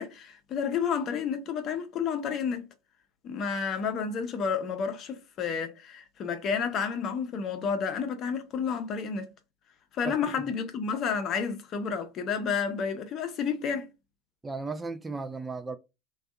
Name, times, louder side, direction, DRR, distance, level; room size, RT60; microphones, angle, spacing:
voice 1, 0.0-2.7 3.2-9.3 9.9-13.9, left 6 dB, 45° left, 0.6 m, -30 dB
voice 2, 10.0-10.5 14.4-15.8, right 4 dB, 15° right, 0.3 m, -36 dB
2.6 x 2.3 x 2.2 m
hypercardioid pair, 75°, 0 cm